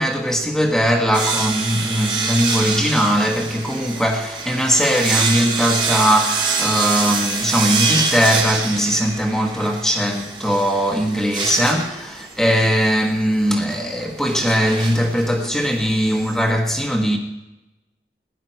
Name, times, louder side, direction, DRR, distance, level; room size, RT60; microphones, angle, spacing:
voice 1, 0.0-17.2, equal, 5° left, 1.3 m, -20 dB
sound 1, 1.1-16.5, right 4 dB, 25° right, 1.4 m, -25 dB
16.5 x 11.0 x 4.5 m
head